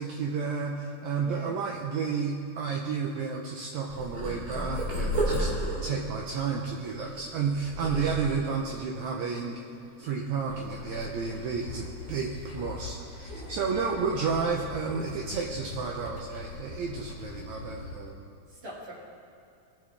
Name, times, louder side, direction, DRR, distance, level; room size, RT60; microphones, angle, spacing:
voice 1, 0.0-5.5 5.8-9.6 10.0-18.3, right 5 dB, 75° right, 0 dB, 1.9 m, -31 dB
voice 2, 1.1-1.5 13.6-13.9 18.5-18.9, equal, 45° right, -5 dB, 3.0 m, -44 dB
Purr, 3.9-8.7 9.3-9.8 10.0-11.2 11.6-13.7 14.0-15.3 15.6-15.9 16.5-16.9, right 1 dB, 90° right, 4.8 m, -34 dB
sound 1, 10.5-18.1, left 4 dB, 80° left, 2.3 m, -42 dB
21.5 x 7.3 x 3.3 m, 2.6 s
omnidirectional pair, 3.6 m